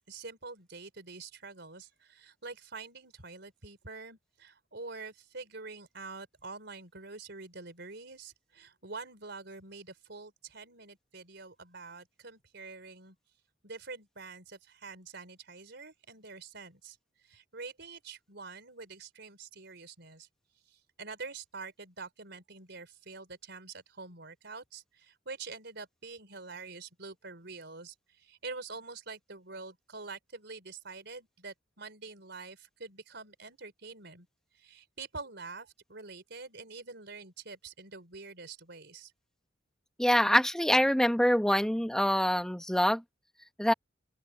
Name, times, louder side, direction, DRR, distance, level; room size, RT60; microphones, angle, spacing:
voice 1, 0.1-13.2 13.6-17.0 17.2-20.3 20.7-34.3 34.5-39.1, right 4 dB, 60° right, 4.8 m, -46 dB
voice 2, 40.0-43.0 43.6-43.7, equal, 5° left, 1.0 m, -25 dB
open air
head